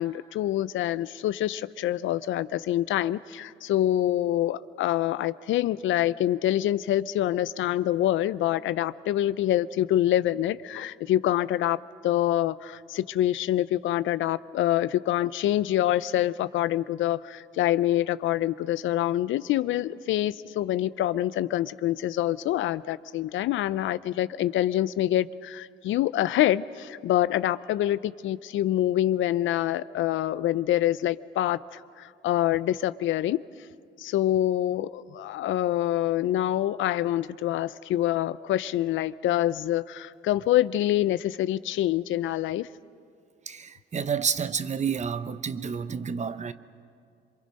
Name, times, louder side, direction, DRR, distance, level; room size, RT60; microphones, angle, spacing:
voice 1, 0.0-11.8 12.0-33.4 34.0-42.7, left 13 dB, 75° left, 0.5 m, -26 dB
voice 2, 43.5-46.5, right 6 dB, 35° right, 0.8 m, -30 dB
27.5 x 23.0 x 5.3 m
cardioid pair, 90°, 20 cm